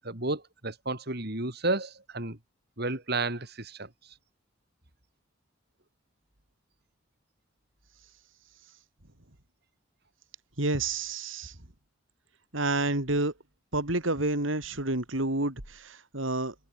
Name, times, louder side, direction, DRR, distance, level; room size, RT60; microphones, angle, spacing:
voice 1, 0.0-2.4 2.8-3.9, right 2 dB, 55° right, 4.1 m, -32 dB
voice 2, 10.6-11.5 12.5-13.3 13.7-16.5, right 2 dB, 80° right, 4.3 m, -29 dB
head